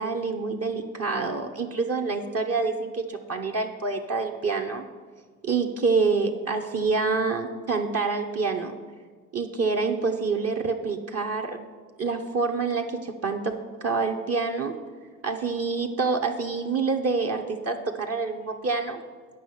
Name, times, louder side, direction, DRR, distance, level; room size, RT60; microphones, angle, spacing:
voice 1, 0.0-4.8 5.4-8.8 9.3-11.6 12.0-14.8 15.2-19.0, right 4 dB, 35° right, 3 dB, 0.9 m, -27 dB
9.2 x 5.5 x 6.3 m, 1.5 s
hypercardioid pair, 50°, 41 cm